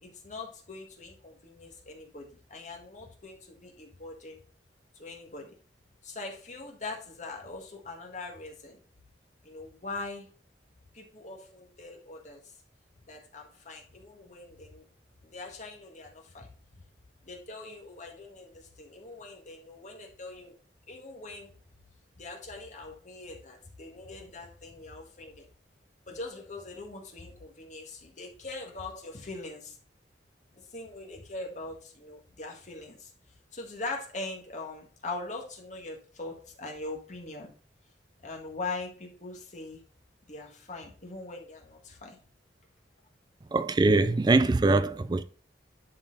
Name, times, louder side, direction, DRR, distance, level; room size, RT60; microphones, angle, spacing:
voice 1, 0.0-4.4 5.0-5.5 6.0-8.8 9.4-10.3 10.9-12.4 13.1-14.8 15.2-16.5 17.2-20.5 20.9-21.5 22.2-25.5 26.1-29.8 30.5-33.1 33.5-37.5 38.2-39.8 40.3-42.2, left 3 dB, 45° left, 1.8 m, -42 dB
voice 2, 43.5-45.2, right 3 dB, 25° right, 0.4 m, -23 dB
10.5 x 4.2 x 3.9 m
head